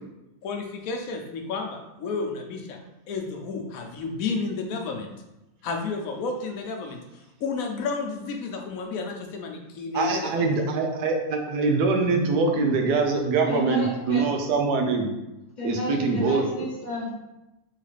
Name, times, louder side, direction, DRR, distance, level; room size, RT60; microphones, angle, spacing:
voice 1, 0.4-2.8 3.1-5.1 5.6-7.0 7.4-10.3, left 4 dB, 65° left, 3 dB, 1.0 m, -31 dB
voice 2, 9.9-15.1 15.6-16.6, right 4 dB, 85° right, 3 dB, 1.3 m, -24 dB
voice 3, 13.5-14.2 15.6-17.1, left 2 dB, 35° left, -4 dB, 1.0 m, -32 dB
3.9 x 3.3 x 3.2 m, 0.96 s
omnidirectional pair, 1.7 m